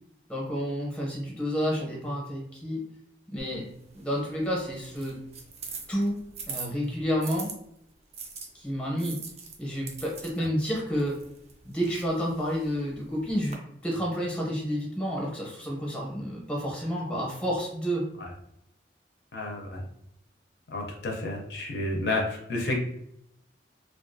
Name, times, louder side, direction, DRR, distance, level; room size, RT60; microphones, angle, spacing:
voice 1, 0.3-2.8 3.3-3.7 3.9-5.2 5.9-6.2 6.5-7.5 8.5-9.2 9.6-11.2 11.6-18.0, equal, 5° left, -2 dB, 0.7 m, -30 dB
sound 1, 3.4-7.5 8.1-13.5, right 5 dB, 35° right, 0.4 m, -43 dB
voice 2, 19.3-19.8 20.7-22.8, left 2 dB, 70° left, 1 dB, 0.5 m, -31 dB
2.4 x 2.3 x 2.5 m, 0.74 s
head